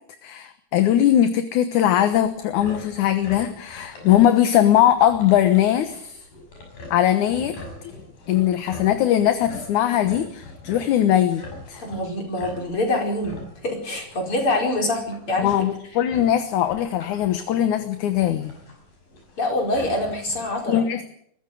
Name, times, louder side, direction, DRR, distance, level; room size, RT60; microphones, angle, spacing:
voice 1, 0.2-6.2 6.9-7.6 7.8-7.9 8.3-11.8 15.4-18.5 20.7-21.0, left 11 dB, 70° left, 10 dB, 2.5 m, -20 dB
big pigs, 2.1-20.6, left 2 dB, 85° left, 7.9 m, -43 dB
voice 2, 11.8-15.5 19.4-20.8, left 1 dB, 40° left, 3 dB, 5.8 m, -25 dB
21.5 x 15.0 x 9.2 m, 0.69 s
omnidirectional pair, 3.9 m